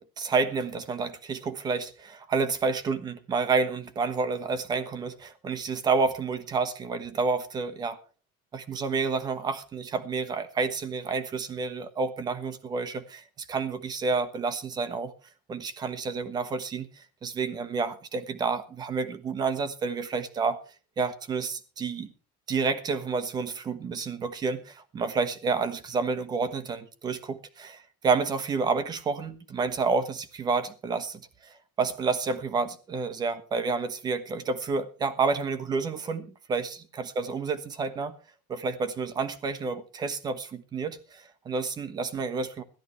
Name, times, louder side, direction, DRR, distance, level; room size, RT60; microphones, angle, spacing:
voice 1, 0.0-8.0 8.5-15.1 15.5-20.6 21.0-22.1 22.5-38.1 38.5-42.6, right 4 dB, 25° right, 1.2 m, -29 dB
21.0 x 13.0 x 3.2 m
cardioid pair, 175°, 17 cm